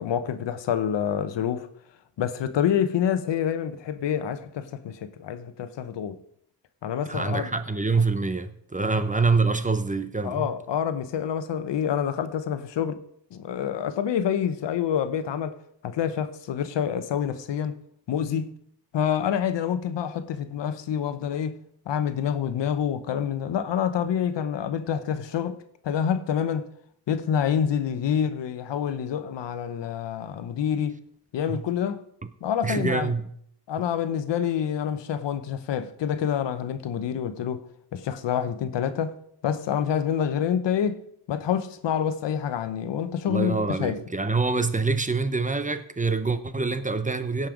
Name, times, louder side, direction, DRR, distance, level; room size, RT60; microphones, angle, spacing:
voice 1, 0.0-1.7 2.2-6.2 6.8-7.5 8.9-9.0 10.2-13.0 13.3-15.5 15.8-17.8 18.1-18.5 18.9-21.6 21.9-25.6 25.8-26.7 27.1-31.0 31.3-32.0 32.4-33.1 33.7-37.6 37.9-39.2 39.4-41.0 41.3-44.0, left 8 dB, 80° left, 1.0 m, -27 dB
voice 2, 7.1-10.5 31.5-31.6 32.6-33.3 43.3-47.5, right 4 dB, 20° right, 0.8 m, -25 dB
16.5 x 5.5 x 5.1 m
cardioid pair, 75°, 42 cm